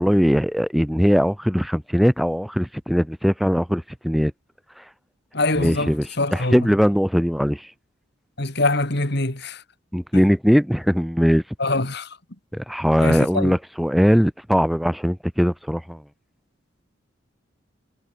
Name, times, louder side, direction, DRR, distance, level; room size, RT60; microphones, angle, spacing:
voice 1, 0.0-4.3 5.6-7.7 9.9-11.4 12.5-16.0, equal, ahead, 1.5 m, -20 dB
voice 2, 5.3-6.7 8.4-9.6 10.1-10.2 11.6-12.2 13.0-13.6, left 2 dB, 55° left, 3.0 m, -24 dB
head